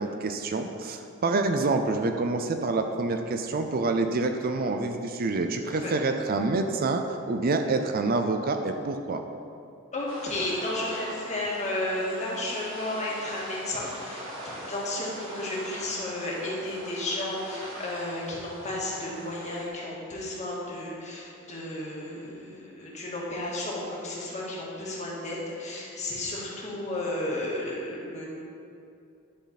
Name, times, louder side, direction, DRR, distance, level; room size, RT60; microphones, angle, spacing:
voice 1, 0.0-9.2, right 3 dB, 45° right, 6 dB, 0.5 m, -27 dB
voice 2, 9.9-28.3, left 1 dB, 35° left, -5 dB, 1.9 m, -33 dB
sound 1, 10.1-19.7, equal, 75° right, 1.8 m, -42 dB
11.5 x 6.2 x 4.2 m, 2.6 s
head